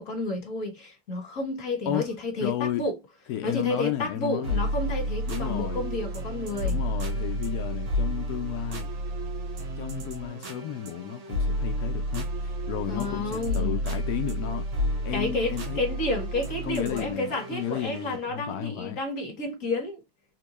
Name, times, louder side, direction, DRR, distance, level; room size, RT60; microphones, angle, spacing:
voice 1, 0.0-3.0 3.4-6.8 12.9-13.8 14.4-14.5 15.1-20.0, left 2 dB, 40° left, 1.6 m, -31 dB
voice 2, 2.4-2.9 3.3-4.6 5.3-5.9 6.6-8.9 9.8-14.7 15.0-15.8 16.6-19.0, left 11 dB, 85° left, 0.8 m, -33 dB
sound 1, 4.4-18.3, equal, 70° right, 1.9 m, -31 dB
4.4 x 2.2 x 3.0 m
omnidirectional pair, 2.3 m